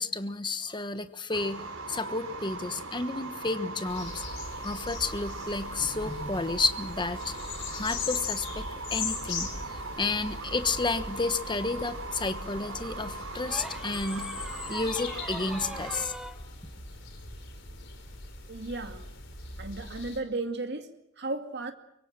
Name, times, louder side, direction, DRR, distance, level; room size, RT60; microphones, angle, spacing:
voice 1, 0.0-1.6 1.9-4.2 4.6-7.3 7.7-8.6 8.9-14.3 14.7-16.1, left 3 dB, 20° left, 1.2 m, -31 dB
sound 1, 1.3-16.0, right 2 dB, 90° right, 3.8 m, -40 dB
sound 2, 3.9-20.2, left 4 dB, 60° left, 4.6 m, -40 dB
sound 3, 13.5-16.4 18.1-18.3, equal, ahead, 1.3 m, -42 dB
voice 2, 18.5-19.1 19.6-21.7, right 2 dB, 55° right, 2.2 m, -35 dB
24.5 x 23.5 x 7.6 m
head